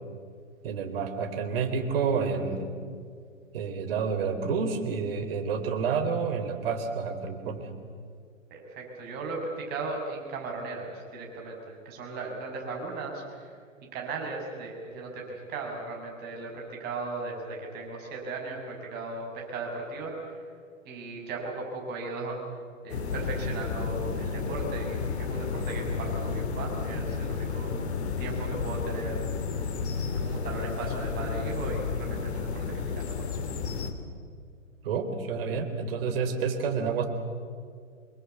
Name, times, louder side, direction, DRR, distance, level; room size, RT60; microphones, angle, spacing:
voice 1, 0.6-2.7 3.5-7.7 34.8-37.1, right 5 dB, 45° right, 6 dB, 3.6 m, -29 dB
voice 2, 8.5-13.5 13.9-20.4 20.8-22.4 22.8-27.7 28.2-29.2 30.2-33.1, right 3 dB, 25° right, 0 dB, 6.4 m, -37 dB
sound 1, 22.9-33.9, left 5 dB, 55° left, 2.8 m, -32 dB
25.5 x 22.5 x 8.3 m, 2.2 s
figure-of-eight pair, 120°, 39 cm